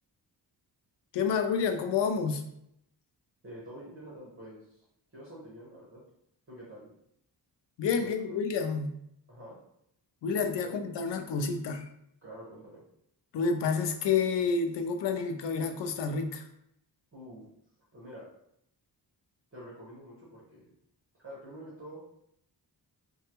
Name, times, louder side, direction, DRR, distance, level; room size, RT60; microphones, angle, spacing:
voice 1, 1.1-2.5 7.8-9.0 10.2-11.9 13.3-16.5, left 5 dB, 90° left, 7 dB, 0.5 m, -29 dB
voice 2, 3.4-4.8 5.1-6.0 6.5-6.9 8.0-8.4 9.3-9.6 10.6-10.9 12.2-12.8 17.1-17.5 17.9-18.3 19.5-20.7 21.2-22.0, right 1 dB, 30° right, -7 dB, 1.2 m, -47 dB
3.2 x 2.3 x 2.9 m, 0.75 s
wide cardioid pair, 125°, 41 cm